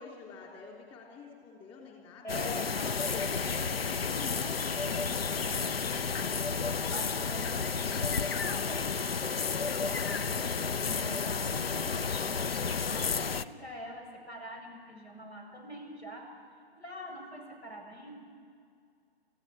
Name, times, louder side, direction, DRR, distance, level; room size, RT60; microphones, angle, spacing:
voice 1, 0.0-2.4 2.8-3.8 4.0-6.1, left 4 dB, 15° left, -1 dB, 3.5 m, -47 dB
voice 2, 2.2-3.1 4.3-5.0 5.4-6.1 6.7-9.7 10.2-16.3 16.8-18.2, equal, 80° left, 3 dB, 7.3 m, -45 dB
sound 1, 2.3-13.4, left 5 dB, 65° left, 0.8 m, -31 dB
Hiss, 2.8-8.1, left 4 dB, 40° left, 3.3 m, -50 dB
29.0 x 15.5 x 9.8 m, 2.3 s
figure-of-eight pair, 135°, 32 cm